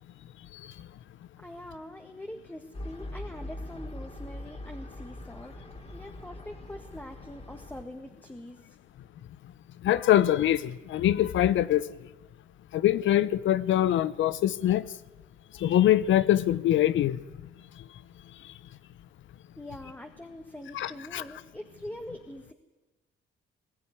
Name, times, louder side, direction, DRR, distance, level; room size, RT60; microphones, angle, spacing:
voice 1, 1.4-5.6 5.9-8.8 19.6-22.5, left 1 dB, 10° left, 5 dB, 1.7 m, -43 dB
sound 1, 2.7-7.8, left 1 dB, 30° left, 3.1 m, -42 dB
voice 2, 9.8-11.8 12.7-14.8 15.6-17.2 20.7-21.2, left 12 dB, 75° left, 16 dB, 0.8 m, -23 dB
21.0 x 13.5 x 9.8 m, 1.2 s
cardioid pair, 90°, 20 cm